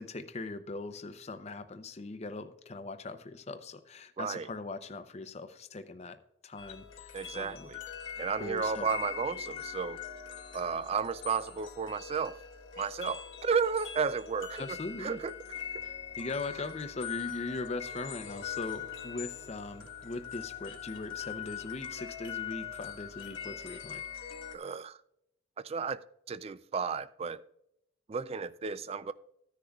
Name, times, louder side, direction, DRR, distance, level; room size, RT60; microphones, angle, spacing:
voice 1, 0.0-6.2 6.4-7.7 8.4-8.9 14.6-15.2 15.8-24.0, left 3 dB, 30° left, 0.6 m, -40 dB
voice 2, 4.2-4.5 7.1-7.8 8.2-10.0 10.5-12.4 12.8-15.3 24.5-25.0 25.6-26.0 26.3-27.4 28.1-29.1, right 6 dB, 30° right, 0.3 m, -33 dB
sound 1, 6.6-24.6, left 9 dB, 65° left, 1.3 m, -42 dB
14.5 x 10.0 x 2.3 m
head